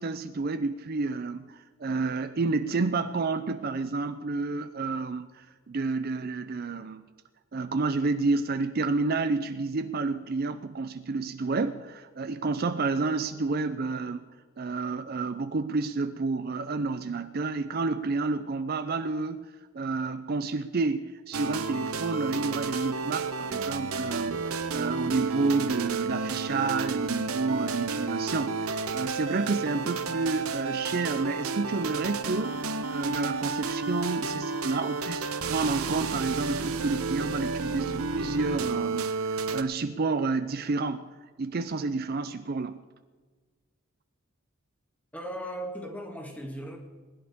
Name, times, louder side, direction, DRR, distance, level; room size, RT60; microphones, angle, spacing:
voice 1, 0.0-7.0 7.5-41.1 41.4-42.8, right 3 dB, 45° right, 10 dB, 0.5 m, -30 dB
sound 1, 21.3-39.6, right 4 dB, 90° right, 0.9 m, -31 dB
voice 2, 45.1-46.8, right 1 dB, 5° left, 2 dB, 1.8 m, -37 dB
20.5 x 11.0 x 3.6 m, 1.4 s
head